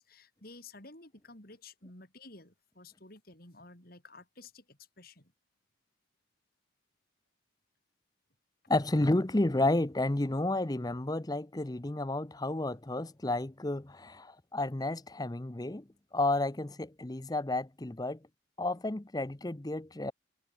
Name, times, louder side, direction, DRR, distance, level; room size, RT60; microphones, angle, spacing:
voice 1, 0.0-5.3, left 3 dB, 50° left, 5.7 m, -53 dB
voice 2, 8.7-15.8 16.1-18.2 18.6-20.1, left 2 dB, 20° left, 0.7 m, -31 dB
head